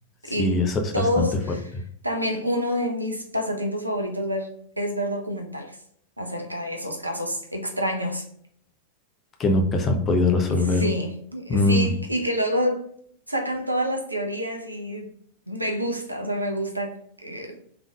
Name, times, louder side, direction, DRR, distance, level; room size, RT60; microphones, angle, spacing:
voice 1, 0.4-1.6 9.4-10.8 11.5-11.9, left 2 dB, 25° left, 4 dB, 0.8 m, -22 dB
voice 2, 0.9-1.7 2.0-4.5 4.8-5.8 6.2-8.3 10.5-12.8 13.3-15.1 15.5-17.6, equal, 85° right, 3 dB, 0.7 m, -28 dB
3.6 x 3.5 x 3.4 m, 0.65 s
figure-of-eight pair, 90°, 0 cm